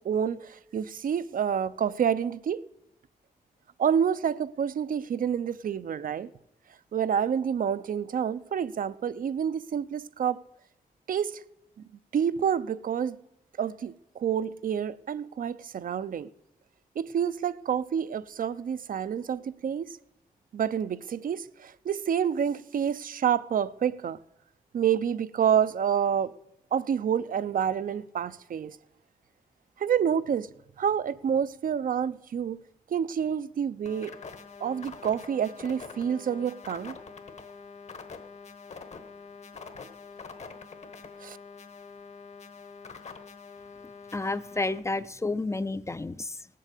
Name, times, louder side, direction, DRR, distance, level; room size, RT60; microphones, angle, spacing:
voice 1, 0.0-2.6 3.8-6.3 6.9-10.4 11.1-11.4 12.1-13.2 13.6-16.3 17.0-19.9 20.5-24.2 24.7-26.3 26.7-28.8 29.8-30.5 30.8-32.6 32.9-34.1 34.6-37.0 41.2-41.4, right 8 dB, 70° right, 0.6 m, -28 dB
sound 1, 33.8-44.8, left 5 dB, 50° left, 1.2 m, -45 dB
voice 2, 44.1-46.5, left 2 dB, 20° left, 0.4 m, -31 dB
18.0 x 7.6 x 8.2 m
wide cardioid pair, 175°, 15 cm